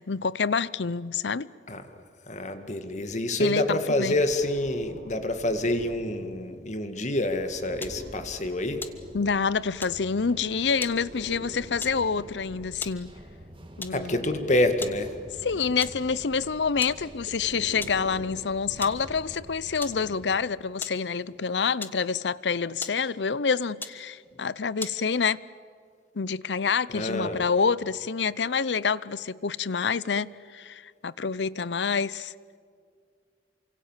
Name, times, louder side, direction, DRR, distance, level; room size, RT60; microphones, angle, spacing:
voice 1, 0.0-1.5 3.4-4.2 9.1-13.1 13.8-14.2 15.4-25.4 26.1-32.3, left 5 dB, 85° left, 0.7 m, -27 dB
voice 2, 2.3-8.8 13.9-15.1 26.9-27.5, left 1 dB, 45° left, 2.0 m, -27 dB
Breathing, 3.9-6.4 7.1-9.5 10.6-13.4 14.0-16.2 17.2-19.5, right 1 dB, 80° right, 4.9 m, -45 dB
sound 1, 7.8-8.1 8.7-9.5 9.8-10.1 10.8-11.1 11.8-12.1 12.6-13.1 13.8-14.1 14.8-15.1 15.4-15.5 15.8-16.1 16.8-17.1 17.8-18.1 18.8-19.1 19.8-20.1 20.8-21.1 21.8-22.3 22.8-23.1 23.8-24.1 24.8-25.1, left 3 dB, 10° left, 1.4 m, -39 dB
sound 2, 7.9-20.4, equal, 30° right, 2.9 m, -49 dB
28.5 x 25.5 x 7.4 m
head